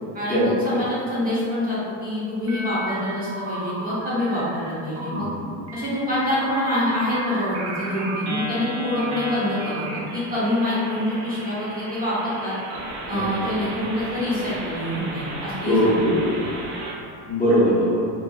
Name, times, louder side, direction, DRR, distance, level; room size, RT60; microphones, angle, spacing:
voice 1, 0.1-5.3 5.7-12.5 13.1-16.0, left 1 dB, 20° right, -10 dB, 0.9 m, -26 dB
sound 1, 2.5-3.0 3.3-4.7 5.0-5.3 5.7-17.0, right 1 dB, 40° right, 0.6 m, -34 dB
voice 2, 5.1-5.5 13.1-13.5 15.6-16.4 17.3-18.0, equal, 20° left, -11 dB, 0.7 m, -21 dB
2.7 x 2.5 x 2.3 m, 2.3 s
supercardioid pair, 115°, 41 cm